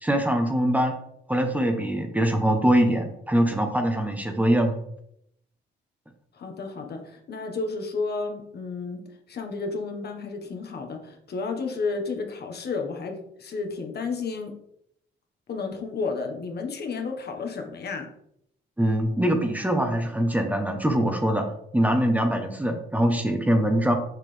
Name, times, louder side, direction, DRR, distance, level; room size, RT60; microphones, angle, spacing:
voice 1, 0.0-1.0 1.3-4.8 18.8-21.5 21.7-23.9, right 1 dB, 10° right, 5 dB, 1.0 m, -23 dB
voice 2, 6.3-9.0 9.3-14.5 15.5-18.1, left 4 dB, 55° left, 3 dB, 1.4 m, -32 dB
6.5 x 5.9 x 3.4 m, 0.73 s
cardioid pair, 90°, 20 cm